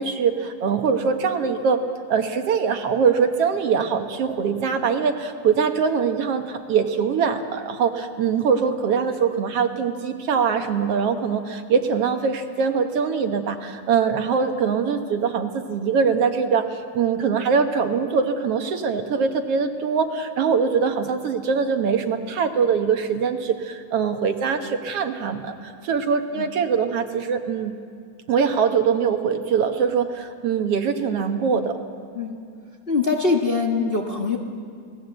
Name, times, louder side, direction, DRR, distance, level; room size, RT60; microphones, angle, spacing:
voice 1, 0.0-1.8 2.1-27.7 28.3-31.8, right 6 dB, 60° right, 6 dB, 2.0 m, -22 dB
voice 2, 32.9-34.4, left 4 dB, 55° left, 1 dB, 0.6 m, -22 dB
28.0 x 19.0 x 8.0 m, 2.3 s
omnidirectional pair, 3.4 m